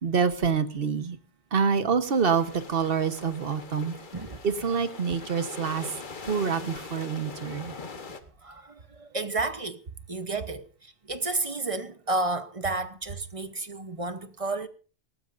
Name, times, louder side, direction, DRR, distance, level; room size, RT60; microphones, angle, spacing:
voice 1, 0.0-1.2 1.5-3.9 4.4-5.9 6.3-7.7, right 6 dB, 55° right, 1.3 m, -26 dB
sound 1, 2.0-8.2, left 4 dB, 45° left, 1.3 m, -42 dB
voice 2, 4.1-4.4 8.4-14.7, right 2 dB, 30° right, 0.9 m, -32 dB
18.5 x 18.0 x 2.6 m
omnidirectional pair, 1.2 m